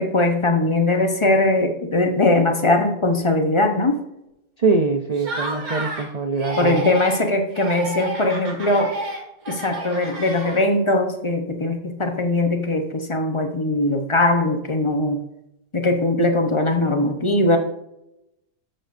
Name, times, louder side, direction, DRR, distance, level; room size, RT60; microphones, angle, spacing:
voice 1, 0.0-4.0 6.6-9.0 9.5-15.2 15.7-17.6, left 2 dB, 25° left, 5 dB, 0.8 m, -20 dB
voice 2, 4.6-6.8, right 4 dB, 45° right, 6 dB, 0.5 m, -23 dB
Laughter, 5.1-6.1 6.4-7.3 7.5-10.9, right 2 dB, 90° right, 2.6 m, -31 dB
13.0 x 7.7 x 2.6 m, 0.87 s
omnidirectional pair, 1.5 m